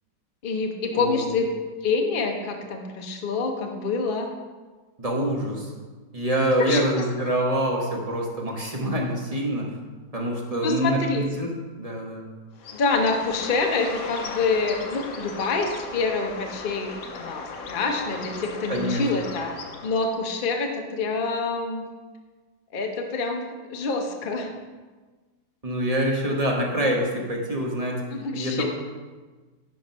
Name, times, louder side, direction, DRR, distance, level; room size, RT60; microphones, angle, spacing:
voice 1, 0.4-1.5 1.8-4.3 6.6-6.8 10.6-11.3 12.7-19.5 19.8-21.8 22.7-24.5 28.1-28.6, left 3 dB, 40° left, 2 dB, 0.8 m, -26 dB
voice 2, 5.0-5.7 6.1-9.7 10.1-11.5 11.8-12.2 18.7-19.0 25.6-28.0 28.3-28.6, right 1 dB, 25° right, -1 dB, 1.0 m, -25 dB
Bird, 12.5-20.3, left 4 dB, 60° left, 1.1 m, -37 dB
10.0 x 4.5 x 5.4 m, 1.3 s
omnidirectional pair, 1.9 m